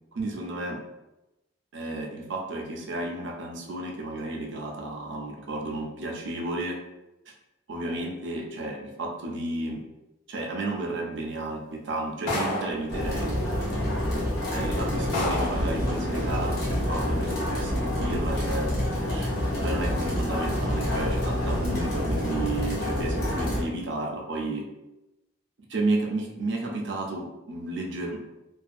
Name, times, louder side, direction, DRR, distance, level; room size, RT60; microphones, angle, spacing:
voice 1, 0.1-0.8 1.7-6.8 7.3-7.4 7.7-9.8 10.3-13.4 14.5-18.7 19.1-19.3 19.6-24.6 25.7-28.2, right 2 dB, 65° right, 1 dB, 0.5 m, -32 dB
sound 1, 12.3-12.8 13.9-14.0 14.5-14.6 15.1-15.7, left 1 dB, 90° left, 1.0 m, -28 dB
sound 2, 12.9-23.6, left 1 dB, 55° left, 0.7 m, -27 dB
2.5 x 2.3 x 2.4 m, 0.98 s
head